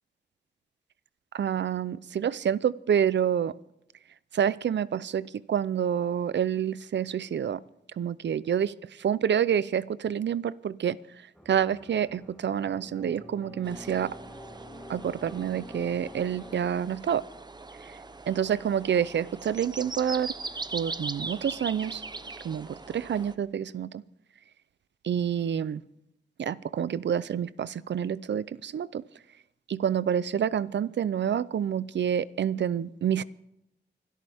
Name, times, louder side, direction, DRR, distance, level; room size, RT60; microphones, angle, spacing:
voice 1, 1.3-3.5 4.3-7.6 8.0-8.7 9.0-11.0 11.5-14.1 14.9-17.2 18.3-20.3 20.7-22.0 22.4-24.0 25.0-25.8 26.4-29.0 29.7-33.2, right 9 dB, 80° right, 19 dB, 0.5 m, -28 dB
sound 1, 11.3-16.7, left 1 dB, ahead, 2.4 m, -47 dB
sound 2, 13.6-23.4, right 3 dB, 25° right, 0.7 m, -40 dB
25.0 x 13.0 x 3.5 m, 0.83 s
wide cardioid pair, 160°, 18 cm